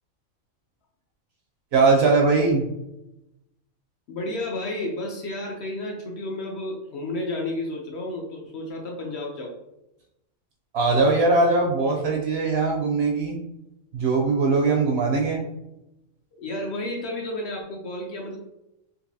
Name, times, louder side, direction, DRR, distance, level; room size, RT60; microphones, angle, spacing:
voice 1, 1.7-2.7 10.7-13.4 13.9-15.4, right 3 dB, 60° right, 0 dB, 0.7 m, -20 dB
voice 2, 4.1-9.6 16.4-18.4, left 1 dB, 65° left, 0 dB, 0.7 m, -31 dB
3.9 x 2.5 x 2.6 m, 0.88 s
omnidirectional pair, 1.4 m